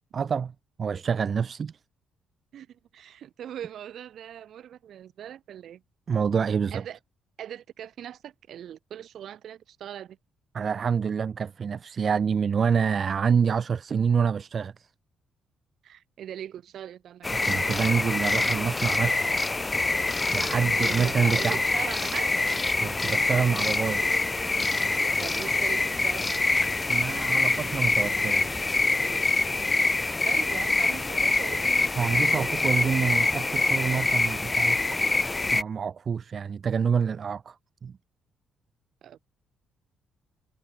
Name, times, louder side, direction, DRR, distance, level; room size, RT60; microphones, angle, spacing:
voice 1, 0.1-0.5 0.8-1.8 6.1-6.8 10.5-14.7 17.4-19.4 20.3-21.6 22.8-24.0 26.9-28.7 32.0-34.8 35.5-37.6 37.8-37.9, right 6 dB, 40° right, 0.7 m, -27 dB
voice 2, 2.5-5.8 6.7-7.0 7.4-10.2 15.8-17.8 20.7-22.4 25.2-26.5 30.2-32.2 39.0-39.2, right 10 dB, 65° right, 3.7 m, -40 dB
sound 1, 17.2-35.6, left 3 dB, 20° left, 0.3 m, -25 dB
cardioid pair, 115°, 0 cm